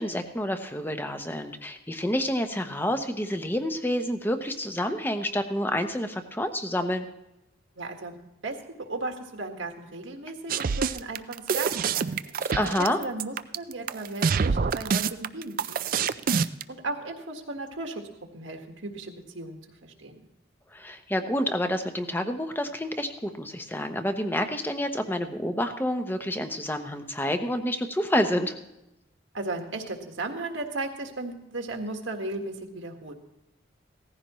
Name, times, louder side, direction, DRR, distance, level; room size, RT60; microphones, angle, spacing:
voice 1, 0.0-7.1 12.6-13.0 20.7-28.6, left 1 dB, 10° left, 7 dB, 0.8 m, -28 dB
voice 2, 7.8-15.8 16.7-18.1 18.3-20.2 29.3-33.1, right 2 dB, 80° right, 4 dB, 1.7 m, -36 dB
sound 1, 10.5-16.6, right 6 dB, 45° right, 0.4 m, -26 dB
17.5 x 14.5 x 3.1 m, 0.91 s
head